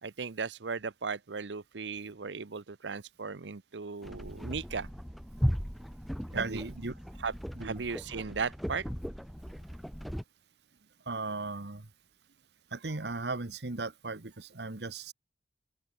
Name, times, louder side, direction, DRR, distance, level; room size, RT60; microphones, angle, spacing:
voice 1, 0.0-4.9 6.3-6.6 7.2-7.3 7.6-8.9 12.9-13.1, right 5 dB, 90° right, 0.8 m, -37 dB
sound 1, 4.0-10.2, equal, ahead, 2.9 m, -37 dB
voice 2, 6.3-6.9 7.6-7.8 11.1-11.8 12.7-15.1, right 3 dB, 70° right, 1.3 m, -36 dB
head